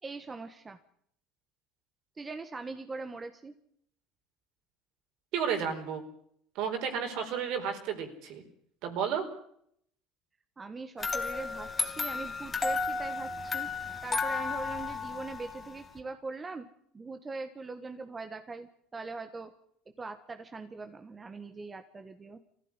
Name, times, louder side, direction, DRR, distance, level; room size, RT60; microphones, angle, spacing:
voice 1, 0.0-0.8 2.1-3.5 10.6-13.7 14.0-16.7 16.9-19.5 20.0-22.4, right 3 dB, 20° right, 7 dB, 1.5 m, -41 dB
voice 2, 5.3-6.0 6.5-8.4 8.8-9.3, right 7 dB, 65° right, 6 dB, 4.5 m, -32 dB
sound 1, 11.0-16.0, left 4 dB, 25° left, 2.6 m, -33 dB
20.5 x 15.0 x 9.9 m, 0.69 s
supercardioid pair, 95°, 0 cm